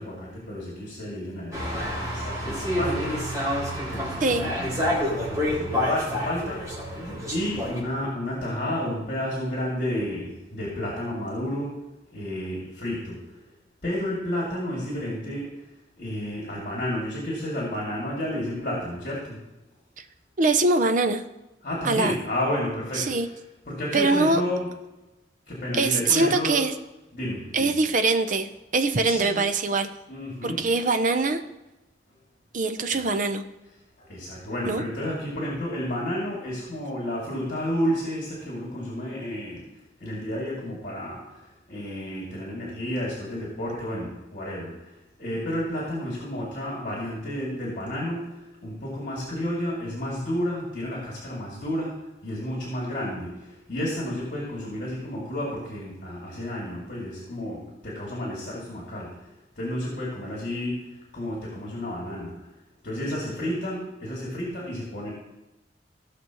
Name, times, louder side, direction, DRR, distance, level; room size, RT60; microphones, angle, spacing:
voice 1, 0.0-3.2 3.9-6.6 7.3-11.8 12.1-13.2 13.8-15.5 16.0-19.4 21.6-23.3 23.7-24.7 25.5-26.6 27.1-27.7 29.0-29.4 30.1-30.7 32.9-33.0 34.0-39.6 40.0-41.2 41.7-44.7 45.2-52.0 52.2-53.3 53.7-59.1 59.6-60.9 61.1-62.3 62.8-65.1, left 1 dB, 50° left, -5 dB, 2.6 m, -31 dB
sound 1, 1.5-7.8, left 1 dB, 20° right, 3.8 m, -28 dB
voice 2, 4.2-4.5 20.4-21.2 21.8-22.1 22.9-23.3 23.9-24.4 25.8-26.7 27.5-29.9 30.4-31.4 32.5-33.4 34.7-34.8, right 3 dB, 50° right, 8 dB, 0.7 m, -23 dB
17.0 x 6.1 x 3.1 m, 1.0 s
head